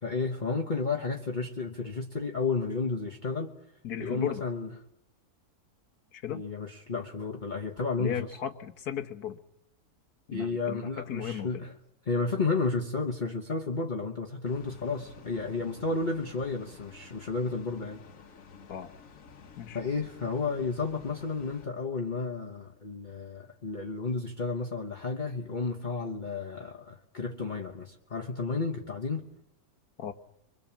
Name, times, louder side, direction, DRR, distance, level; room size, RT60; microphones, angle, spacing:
voice 1, 0.0-3.5 4.0-4.7 6.3-8.3 10.3-11.7 12.1-18.0 19.7-29.2, left 4 dB, 35° left, 1 dB, 1.2 m, -32 dB
voice 2, 3.8-4.4 6.1-6.4 8.0-9.4 10.3-11.6 18.7-18.9 19.6-19.8 30.0-30.1, left 9 dB, 80° left, 9 dB, 1.7 m, -36 dB
sound 1, 14.4-21.7, left 5 dB, 60° left, 1.6 m, -52 dB
24.5 x 23.5 x 7.2 m, 0.83 s
omnidirectional pair, 1.6 m